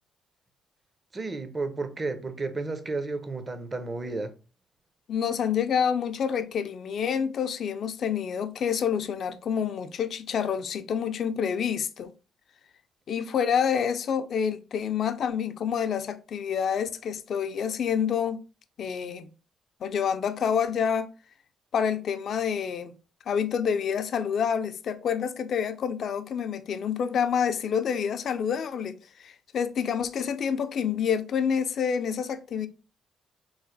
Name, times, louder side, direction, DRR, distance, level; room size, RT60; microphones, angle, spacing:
voice 1, 1.1-4.3, right 3 dB, 30° right, 0.6 m, -32 dB
voice 2, 5.1-12.1 13.1-18.4 18.8-19.3 19.8-21.1 21.7-22.9 23.3-32.7, left 7 dB, 60° left, 0.4 m, -28 dB
3.1 x 2.1 x 3.9 m
cardioid pair, 90°, 0 cm